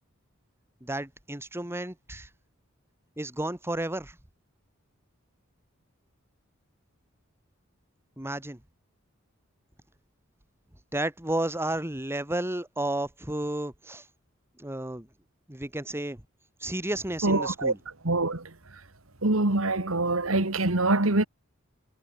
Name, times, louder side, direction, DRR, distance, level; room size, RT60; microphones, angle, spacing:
voice 1, 0.8-2.3 3.2-4.2 8.2-8.6 10.9-14.1 14.6-15.1 15.5-16.2 16.6-17.8, right 1 dB, 10° right, 2.1 m, -32 dB
voice 2, 17.2-17.7 18.0-18.5 19.2-21.3, right 2 dB, 85° right, 2.4 m, -24 dB
head